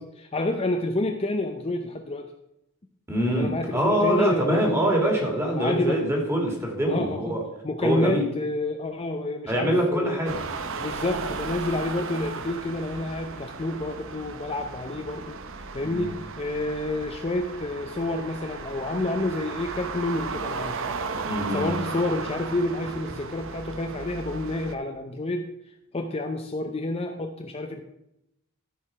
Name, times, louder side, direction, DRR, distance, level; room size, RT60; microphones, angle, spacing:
voice 1, 0.0-2.3 3.2-5.1 5.6-6.0 6.9-10.2 10.8-15.4 15.7-20.8 21.3-25.5 25.9-27.8, left 2 dB, 30° left, 4 dB, 0.6 m, -29 dB
voice 2, 3.1-7.4 7.8-8.2 9.5-10.4 15.8-16.1 21.2-21.8, equal, 10° right, 0 dB, 2.0 m, -24 dB
sound 1, 10.2-24.8, right 4 dB, 65° right, 0.7 m, -35 dB
13.0 x 4.8 x 4.8 m, 0.83 s
head